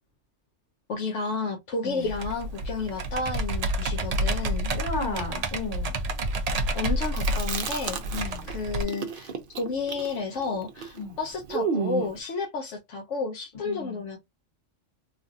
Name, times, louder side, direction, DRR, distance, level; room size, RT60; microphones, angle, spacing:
voice 1, 0.9-4.7 6.7-14.2, left 4 dB, 75° left, 1.0 m, -31 dB
Computer keyboard, 2.1-8.8, right 1 dB, 80° right, 0.3 m, -29 dB
voice 2, 4.7-6.0 8.1-8.5 10.9-11.2 13.6-14.0, left 3 dB, 45° left, 1.4 m, -34 dB
Chewing mastication, 7.1-8.5 8.8-12.2, right 6 dB, 55° right, 0.7 m, -32 dB
3.1 x 2.5 x 2.6 m
omnidirectional pair, 1.3 m